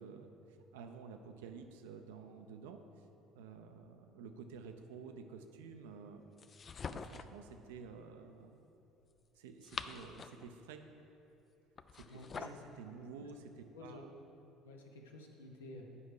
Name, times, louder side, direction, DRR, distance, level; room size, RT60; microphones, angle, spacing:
voice 1, 0.0-3.0 3.3-6.2 6.9-8.6 9.4-10.8 11.9-14.1, right 5 dB, 75° right, 6 dB, 0.5 m, -51 dB
sound 1, 6.4-7.4 9.4-10.5 11.8-12.7, left 5 dB, 35° left, 0.3 m, -45 dB
voice 2, 12.1-12.6 13.7-14.0 14.6-15.9, left 2 dB, 85° left, 2 dB, 0.8 m, -51 dB
8.4 x 5.1 x 4.8 m, 2.9 s
hypercardioid pair, 60°, 0 cm